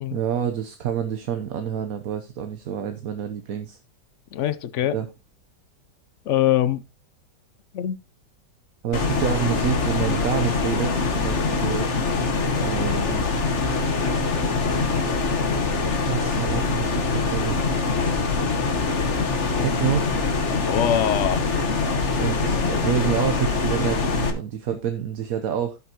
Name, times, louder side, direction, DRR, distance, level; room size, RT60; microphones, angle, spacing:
voice 1, 0.1-3.8 4.9-5.1 8.8-11.9 12.6-13.3 16.0-18.2 19.6-20.1 21.5-21.6 22.2-25.8, right 8 dB, 60° right, 1.1 m, -28 dB
voice 2, 4.3-5.0 6.3-6.8 7.7-8.0 19.6-19.8 20.6-21.5, left 11 dB, 75° left, 0.6 m, -23 dB
sound 1, 8.9-24.3, left 4 dB, 45° left, 1.5 m, -23 dB
16.5 x 5.5 x 2.9 m
omnidirectional pair, 1.9 m